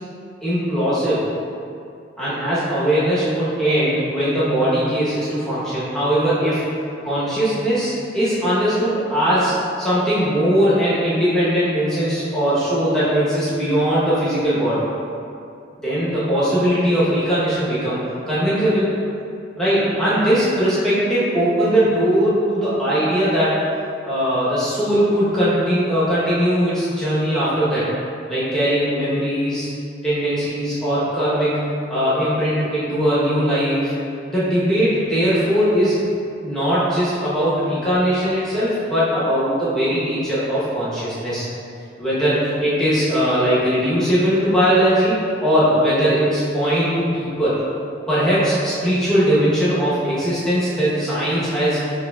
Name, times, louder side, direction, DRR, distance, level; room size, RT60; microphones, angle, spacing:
voice 1, 0.4-1.2 2.2-6.6 7.0-14.8 15.8-18.9 19.6-23.6 24.1-27.9 28.3-29.7 30.0-31.6 31.9-33.9 34.3-35.9 36.4-41.4 42.0-47.5 48.1-51.8, equal, 5° left, -11 dB, 1.0 m, -20 dB
6.6 x 2.9 x 2.3 m, 2.5 s
head